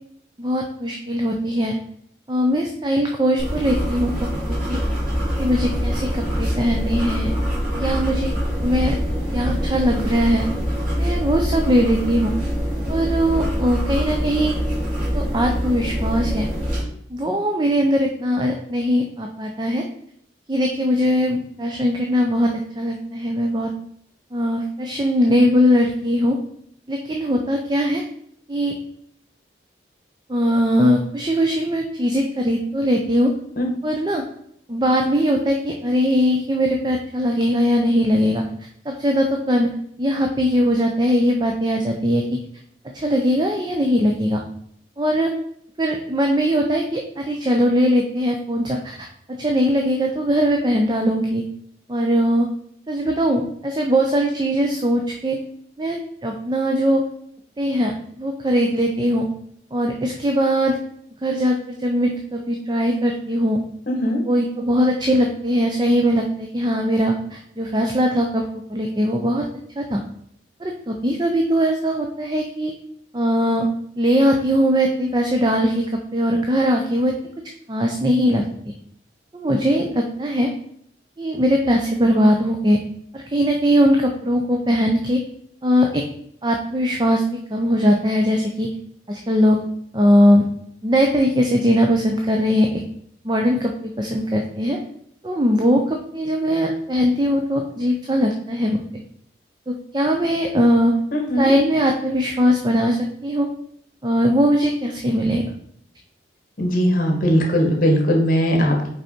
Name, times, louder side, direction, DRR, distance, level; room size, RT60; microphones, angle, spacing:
voice 1, 0.4-1.8 2.3-4.1 4.5-4.8 5.4-7.3 7.7-8.3 8.6-8.9 9.3-10.5 11.0-12.3 12.9-14.5 15.1-16.5 17.1-19.8 20.5-23.7 24.3-26.4 26.9-28.0 28.5-28.8 30.3-33.3 33.8-34.2 34.7-38.4 38.9-39.7 40.0-42.4 42.9-44.4 45.0-45.3 45.8-51.4 51.9-52.5 52.9-55.4 55.8-57.0 57.6-57.9 58.2-59.3 59.7-60.8 61.2-63.6 64.3-68.4 68.7-69.4 69.8-70.0 70.6-72.7 73.1-73.7 74.0-75.8 76.1-77.1 77.7-78.4 79.3-80.5 81.2-82.8 83.1-85.2 85.6-86.0 86.4-87.2 87.5-88.7 89.1-89.6 89.9-90.4 90.8-92.7 93.2-94.8 95.2-98.8 99.7-100.9 101.4-103.0 103.2-103.5 104.0-105.4, equal, 25° right, 2 dB, 0.5 m, -20 dB
sound 1, 3.4-16.8, equal, 50° right, 2.8 m, -24 dB
voice 2, 63.9-64.2 101.1-101.5 106.6-108.9, equal, 50° left, 1 dB, 1.3 m, -19 dB
5.3 x 4.7 x 4.3 m, 0.68 s
head